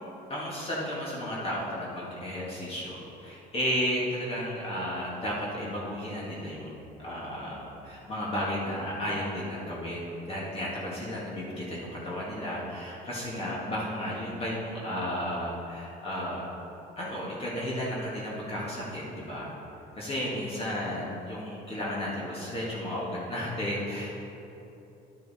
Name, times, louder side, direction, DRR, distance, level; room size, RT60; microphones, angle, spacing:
voice 1, 0.3-16.4 17.0-19.5 20.0-24.1, equal, 35° left, -6 dB, 1.9 m, -33 dB
10.5 x 6.3 x 4.2 m, 3.0 s
cardioid pair, 110°, 17 cm